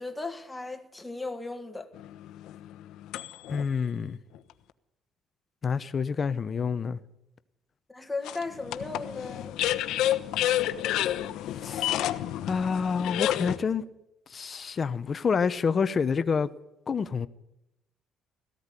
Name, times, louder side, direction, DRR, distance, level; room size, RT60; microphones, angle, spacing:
voice 1, 0.0-1.9 7.9-9.6, left 3 dB, 10° left, 1.8 m, -36 dB
sound 1, 2.0-3.7 4.3-4.4 8.2-13.6, left 13 dB, 75° left, 1.1 m, -30 dB
voice 2, 3.5-4.2 5.6-7.0 11.6-12.0 12.5-13.8 14.3-16.5 16.9-17.3, left 5 dB, 30° left, 0.9 m, -28 dB
18.0 x 15.0 x 9.9 m
cardioid pair, 150°, 0 cm